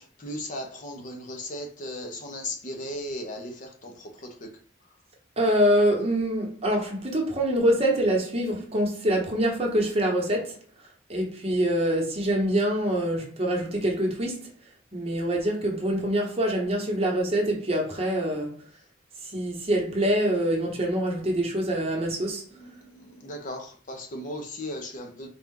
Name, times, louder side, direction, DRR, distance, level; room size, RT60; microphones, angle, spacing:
voice 1, 0.2-3.5 23.2-25.3, left 1 dB, 45° left, 0.8 m, -36 dB
voice 2, 5.4-10.5 11.1-14.4 14.9-18.6 19.2-22.4, right 1 dB, 30° right, 1.0 m, -25 dB
4.2 x 2.4 x 3.7 m
head